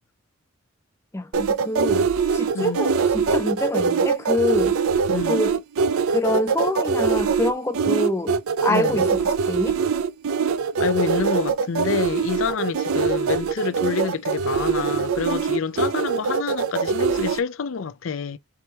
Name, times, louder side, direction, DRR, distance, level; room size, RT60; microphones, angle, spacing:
voice 1, 1.1-4.8 5.3-5.6 6.1-9.8, left 2 dB, 10° left, 0.5 m, -26 dB
sound 1, 1.3-17.4, right 5 dB, 75° right, 0.4 m, -23 dB
voice 2, 5.1-5.4 8.7-9.1 10.8-18.4, left 6 dB, 65° left, 0.5 m, -28 dB
4.7 x 2.8 x 3.1 m
head